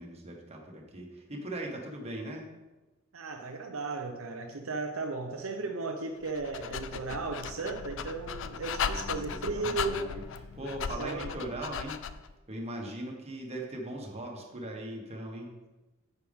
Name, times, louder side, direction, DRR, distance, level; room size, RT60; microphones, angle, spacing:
voice 1, 0.0-2.5 8.8-12.0 12.5-15.5, right 1 dB, 30° right, 0 dB, 1.5 m, -40 dB
voice 2, 3.1-10.2 11.0-11.3, right 3 dB, 80° right, 4 dB, 0.7 m, -35 dB
Dog, 6.2-12.3, left 7 dB, 65° left, 0.4 m, -37 dB
9.2 x 6.7 x 3.6 m, 1.1 s
head